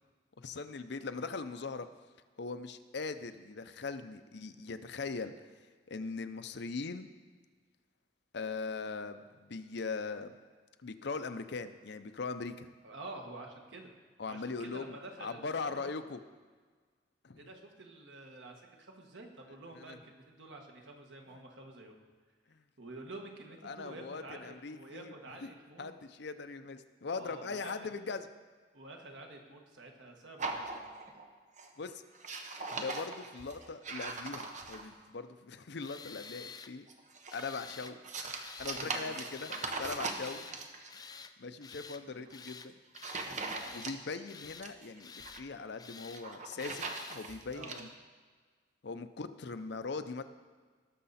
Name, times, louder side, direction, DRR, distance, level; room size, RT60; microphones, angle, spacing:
voice 1, 0.4-1.9 2.4-5.3 5.9-7.1 8.3-10.4 10.8-12.7 14.2-14.9 15.2-16.2 17.2-17.4 19.7-20.0 22.5-22.6 23.6-25.1 25.4-25.5 25.8-28.3 31.8-32.0 32.7-36.9 37.3-38.0 38.6-40.4 41.0-42.7 43.7-47.9 48.8-50.2, left 4 dB, 65° left, 10 dB, 0.6 m, -40 dB
voice 2, 12.8-13.9 14.3-15.9 17.4-21.9 22.8-25.9 27.1-27.9 28.7-31.0 38.7-39.2 39.7-40.3 42.1-42.3 43.2-43.7 47.5-47.9, right 2 dB, 80° right, 2 dB, 1.6 m, -49 dB
sound 1, 30.4-31.3 31.6-31.9 32.1-35.0 36.9-40.9 42.3-42.5 43.0-44.2 44.5-45.4 46.0-47.8, right 3 dB, 40° right, 1.0 m, -40 dB
Tools, 35.8-36.7 37.3-38.0 38.4-38.9 39.3-39.8 40.1-40.6 40.9-41.3 41.6-42.0 42.3-42.7 42.9-43.9 44.3-44.7 45.0-45.4 45.8-46.2 46.6-47.2, left 5 dB, 20° left, 0.4 m, -50 dB
18.5 x 6.5 x 4.2 m, 1.5 s
head